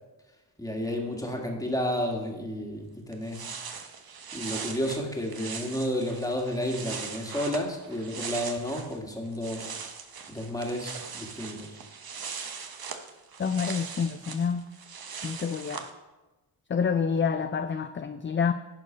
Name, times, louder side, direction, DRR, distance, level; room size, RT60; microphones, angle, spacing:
voice 1, 0.6-3.4 4.3-9.8 10.3-11.8, equal, 10° left, 1 dB, 2.0 m, -31 dB
sound 1, 2.8-2.9 3.1-9.0 9.3-15.9, right 6 dB, 55° right, 1.0 m, -40 dB
voice 2, 13.4-14.6 15.2-15.8 16.7-18.5, left 6 dB, 30° left, 9 dB, 0.4 m, -28 dB
10.5 x 4.6 x 5.1 m, 1.1 s
cardioid pair, 55°, 44 cm